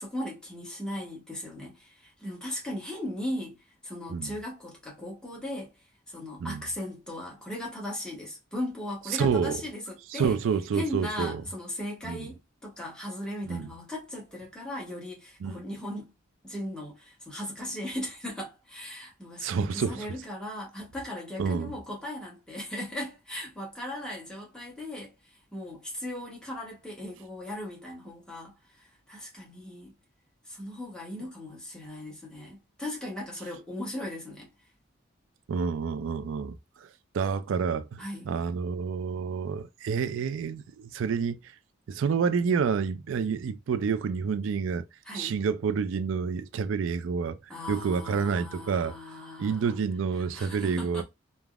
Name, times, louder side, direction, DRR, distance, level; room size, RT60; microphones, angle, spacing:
voice 1, 0.0-3.6 3.8-5.7 6.1-10.4 10.7-16.1 16.4-25.1 25.5-29.9 30.5-34.5 38.0-38.3 45.0-45.3 47.5-49.8 50.2-51.0, left 1 dB, 5° left, 1.0 m, -38 dB
voice 2, 9.1-9.6 10.1-11.4 12.0-12.3 13.5-13.7 15.4-15.6 19.4-20.1 21.4-21.7 35.5-36.9 37.1-41.4 41.9-44.8 45.1-47.4 47.7-49.0 49.4-51.0, right 6 dB, 80° right, 0.3 m, -28 dB
3.3 x 2.0 x 2.3 m
head